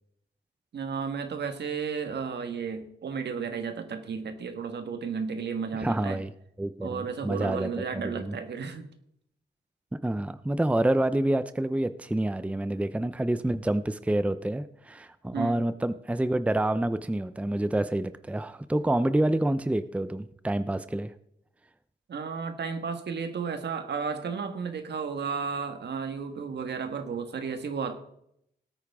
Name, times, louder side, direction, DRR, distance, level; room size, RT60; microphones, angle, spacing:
voice 1, 0.7-6.2 6.8-8.9 15.3-15.6 22.1-28.0, right 5 dB, 70° right, 7 dB, 1.6 m, -33 dB
voice 2, 5.8-6.3 6.6-8.4 10.0-21.1, right 1 dB, 5° right, 13 dB, 0.6 m, -28 dB
18.5 x 8.8 x 3.6 m, 0.73 s
cardioid pair, 75°, 18 cm